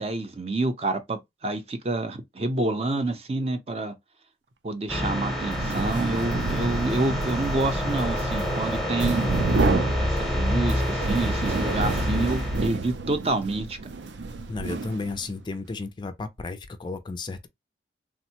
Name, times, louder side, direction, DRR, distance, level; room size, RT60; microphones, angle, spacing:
voice 1, 0.0-3.9 4.6-9.4 10.0-13.8, right 2 dB, 35° right, 0.5 m, -28 dB
sound 1, 4.9-12.7, equal, ahead, 0.7 m, -27 dB
sound 2, 5.4-15.4, right 3 dB, 85° right, 0.5 m, -30 dB
voice 2, 14.5-17.5, left 3 dB, 25° left, 0.3 m, -33 dB
3.4 x 2.0 x 2.7 m
head